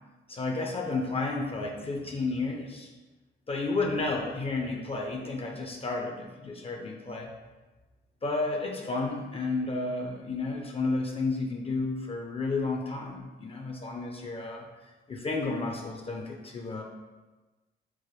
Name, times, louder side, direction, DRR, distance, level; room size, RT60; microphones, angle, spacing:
voice 1, 0.3-2.9 3.5-7.3 8.2-14.6 15.1-16.8, left 3 dB, 30° left, 2 dB, 0.4 m, -32 dB
4.6 x 2.1 x 3.1 m, 1.2 s
cardioid pair, 90°, 20 cm